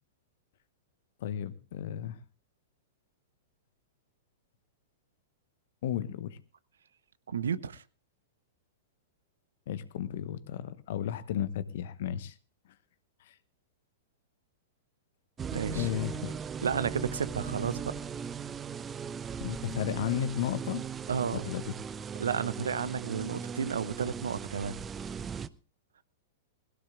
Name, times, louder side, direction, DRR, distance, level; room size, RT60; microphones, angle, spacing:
voice 1, 1.2-2.2 5.8-6.4 9.7-12.3 13.3-13.4 15.7-16.3 19.4-20.8 21.4-21.7, left 10 dB, 55° left, 1.1 m, -33 dB
voice 2, 7.3-7.8 15.5-15.9 16.6-17.9 21.1-21.4 22.2-24.8, right 7 dB, 70° right, 0.8 m, -32 dB
sound 1, 15.4-25.5, right 6 dB, 20° right, 0.6 m, -38 dB
20.5 x 16.5 x 2.4 m
figure-of-eight pair, 100°, 0 cm